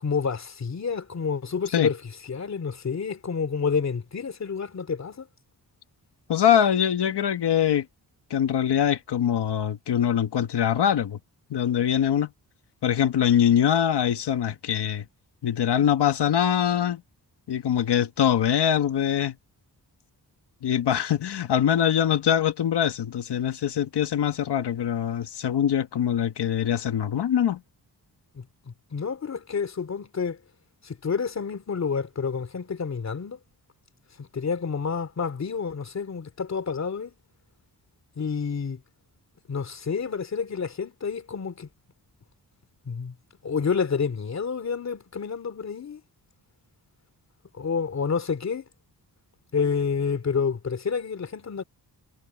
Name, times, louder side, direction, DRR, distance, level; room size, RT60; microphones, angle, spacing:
voice 1, 0.0-5.3 28.3-30.4 30.8-33.4 34.2-37.1 38.2-38.8 39.5-41.7 42.8-43.1 43.4-46.0 47.5-48.7 49.5-51.6, left 5 dB, 40° left, 2.9 m, -29 dB
voice 2, 6.3-7.9 8.3-11.2 11.5-12.3 12.8-15.0 15.4-17.0 17.5-19.4 20.6-27.6, left 9 dB, 80° left, 1.8 m, -23 dB
wide cardioid pair, 175°, 40 cm